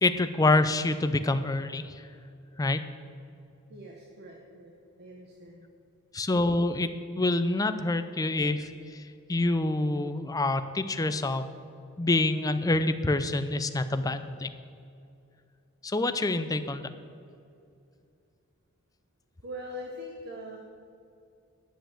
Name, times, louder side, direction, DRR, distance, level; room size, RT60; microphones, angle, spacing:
voice 1, 0.0-2.0 2.6-2.8 6.1-9.0 9.3-11.4 12.0-14.5 15.8-16.9, left 2 dB, 15° left, 10 dB, 0.5 m, -26 dB
voice 2, 3.7-4.7 5.0-5.7 19.4-20.6, equal, 50° right, 0 dB, 1.1 m, -42 dB
10.5 x 7.0 x 7.5 m, 2.5 s
head